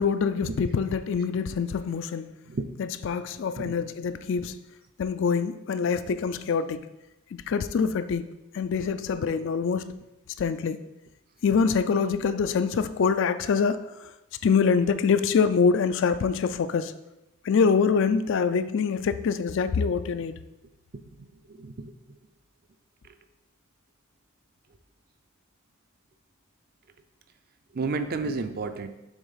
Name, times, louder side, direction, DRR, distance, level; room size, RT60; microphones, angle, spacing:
voice 1, 0.0-2.3 2.8-4.6 5.0-6.9 7.5-8.3 8.5-10.0 10.4-10.8 11.4-13.8 14.4-16.9 17.4-20.4, left 5 dB, 55° left, 12 dB, 0.3 m, -25 dB
voice 2, 20.9-21.9 27.7-28.9, right 3 dB, 40° right, 9 dB, 0.5 m, -32 dB
7.1 x 3.5 x 5.6 m, 0.94 s
head